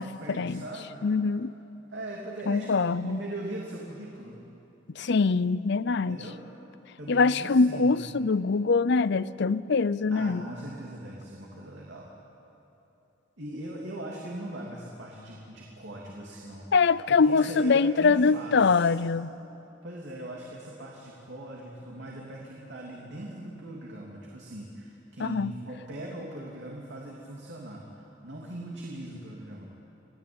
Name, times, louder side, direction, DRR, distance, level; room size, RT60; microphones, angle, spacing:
voice 1, 0.0-1.1 1.9-4.4 6.0-6.4 7.0-8.0 10.1-12.1 13.4-18.9 19.8-29.6, right 1 dB, 65° right, -2 dB, 3.1 m, -40 dB
voice 2, 1.0-1.5 2.5-3.2 5.0-6.2 7.1-10.4 16.7-19.3 25.2-25.5, left 4 dB, 65° left, 18 dB, 0.6 m, -23 dB
28.5 x 17.5 x 9.0 m, 3.0 s
head